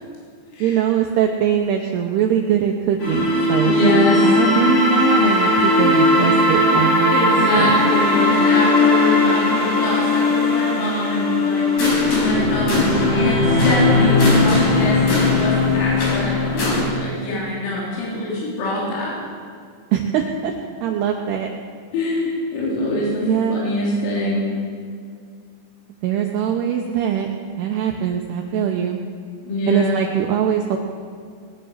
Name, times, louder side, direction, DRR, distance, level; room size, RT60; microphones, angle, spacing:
voice 1, 0.6-7.3 7.6-7.7 19.9-20.5 20.8-21.5 23.2-23.6 26.0-27.3 27.6-29.0 29.7-30.8, right 9 dB, 75° right, 1 dB, 2.5 m, -22 dB
sound 1, 3.0-16.8, left 2 dB, 55° left, 6.3 m, -18 dB
voice 2, 3.6-4.4 7.1-19.1 21.9-24.5 29.4-30.0, left 1 dB, 80° left, -6 dB, 5.7 m, -24 dB
20.5 x 10.0 x 6.6 m, 2.2 s
omnidirectional pair, 5.6 m